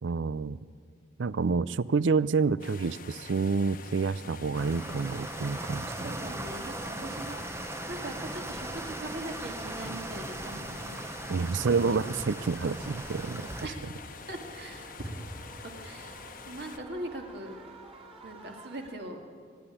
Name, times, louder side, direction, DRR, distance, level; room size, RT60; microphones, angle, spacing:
voice 1, 0.0-0.6 1.2-5.9 11.3-13.5, right 4 dB, 85° right, 18 dB, 0.5 m, -28 dB
sound 1, 2.6-16.8, left 5 dB, 50° left, 1.1 m, -47 dB
sound 2, 4.5-13.7, right 2 dB, 15° right, 0.6 m, -38 dB
voice 2, 6.0-7.4 7.9-12.2 13.6-13.8 14.3-15.1 15.8-16.2 16.5-17.5 18.2-19.2, right 1 dB, 60° right, 2 dB, 2.6 m, -41 dB
sound 3, 8.4-18.9, right 2 dB, 30° right, 2.8 m, -51 dB
26.0 x 10.5 x 10.0 m, 2.2 s
head